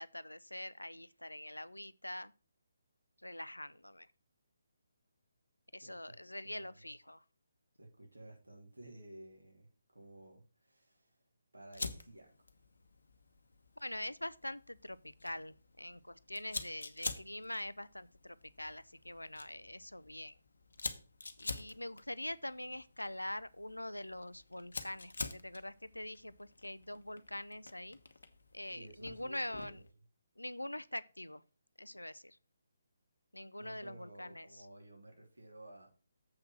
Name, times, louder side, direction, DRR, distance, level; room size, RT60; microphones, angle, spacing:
voice 1, 0.0-2.3 3.2-4.1 5.7-7.2 13.8-20.4 21.4-28.0 28.5-29.8 30.4-31.4 31.8-32.4 33.3-34.7, left 1 dB, 90° left, 0.5 m, -44 dB
voice 2, 5.8-6.1 6.4-6.8 7.8-11.2 11.5-12.5 28.7-29.9 33.6-35.9, right 1 dB, 75° right, 3.3 m, -54 dB
Fire, 11.7-29.9, left 3 dB, 65° left, 1.1 m, -48 dB
7.7 x 5.7 x 6.0 m
figure-of-eight pair, 145°, 0 cm